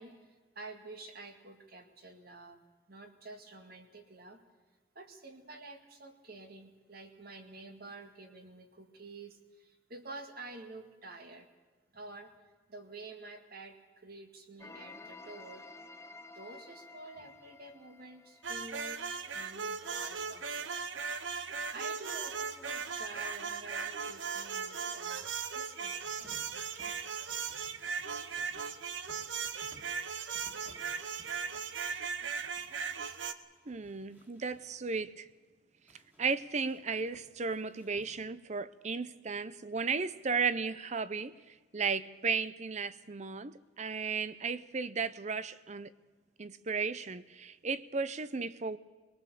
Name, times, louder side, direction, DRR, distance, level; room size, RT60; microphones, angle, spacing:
voice 1, 0.0-2.6 2.9-4.4 5.0-11.5 11.9-12.3 12.7-15.6 16.3-19.0 19.3-20.8 21.7-26.3 27.4-27.5, right 2 dB, 55° right, 2.1 m, -49 dB
sound 1, 14.6-19.4, left 3 dB, 15° left, 0.8 m, -52 dB
sound 2, 18.4-33.3, right 6 dB, 85° right, 1.0 m, -38 dB
sound 3, 26.0-33.1 33.5-35.1 35.9-38.5, equal, 10° right, 2.4 m, -62 dB
voice 2, 33.7-35.3 36.2-41.3 41.7-45.9 46.4-48.8, right 5 dB, 40° right, 0.6 m, -35 dB
23.0 x 19.5 x 6.9 m
head